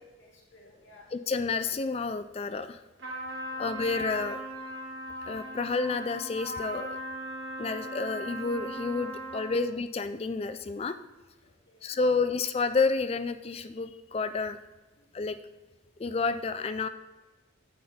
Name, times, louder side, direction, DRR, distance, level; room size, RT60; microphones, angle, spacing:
voice 1, 0.0-1.1 3.5-3.7 9.3-9.7 11.4-12.0 15.0-15.1, left 2 dB, 70° left, -2 dB, 2.6 m, -57 dB
voice 2, 1.1-2.8 3.6-4.4 5.3-7.0 7.6-11.0 11.8-14.6 15.1-15.4 16.0-16.9, left 4 dB, 30° left, 11 dB, 0.3 m, -30 dB
Trumpet, 3.0-9.7, right 1 dB, 70° right, 2.8 m, -38 dB
9.2 x 8.4 x 4.3 m, 1.2 s
head